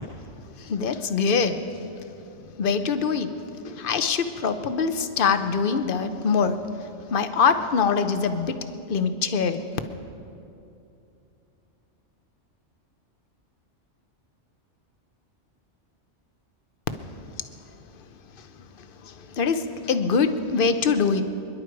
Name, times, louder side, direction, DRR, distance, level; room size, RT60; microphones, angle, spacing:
voice 1, 0.6-1.6 2.6-3.3 3.6-6.6 7.1-8.6 8.9-9.6 19.0-21.2, left 5 dB, 50° left, 9 dB, 1.0 m, -23 dB
27.0 x 11.0 x 4.6 m, 2.7 s
omnidirectional pair, 1.2 m